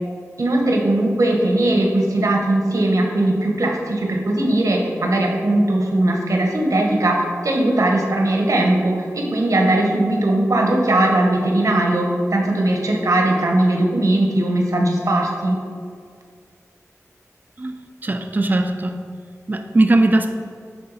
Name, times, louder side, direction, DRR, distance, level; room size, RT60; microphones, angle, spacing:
voice 1, 0.4-15.6, right 1 dB, 75° right, 0 dB, 1.1 m, -19 dB
voice 2, 18.0-19.0 19.5-20.3, right 2 dB, 35° right, 5 dB, 0.5 m, -18 dB
10.0 x 3.8 x 4.0 m, 2.1 s
wide cardioid pair, 80°, 6 cm